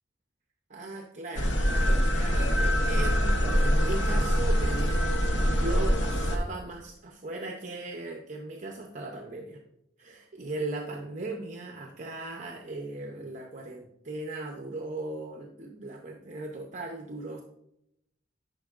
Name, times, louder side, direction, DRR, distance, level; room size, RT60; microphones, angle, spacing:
voice 1, 0.7-5.1 5.4-9.6 10.0-17.4, right 2 dB, 40° right, 2 dB, 0.6 m, -38 dB
sound 1, 1.3-6.4, equal, 75° left, 0.9 m, -24 dB
10.0 x 5.2 x 2.4 m, 0.80 s
head